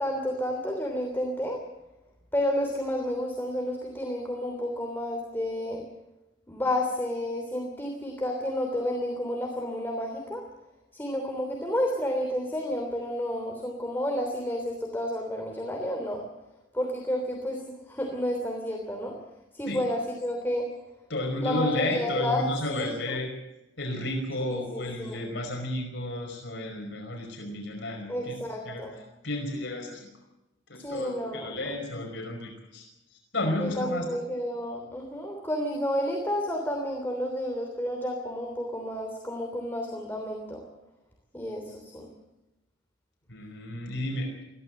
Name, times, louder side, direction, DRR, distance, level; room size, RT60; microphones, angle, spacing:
voice 1, 0.0-1.6 2.3-5.8 6.5-10.4 10.9-16.2 16.7-19.1 19.5-20.7 21.4-23.2 24.4-25.2 28.1-28.9 30.7-31.6 33.6-40.6 41.3-42.1, left 1 dB, 10° left, 1 dB, 3.2 m, -31 dB
voice 2, 21.1-23.3 23.8-28.3 28.7-28.8 29.2-30.1 30.7-32.9 33.3-34.1 43.3-44.3, left 1 dB, 65° left, 1 dB, 5.2 m, -32 dB
22.0 x 16.0 x 7.8 m, 0.98 s
head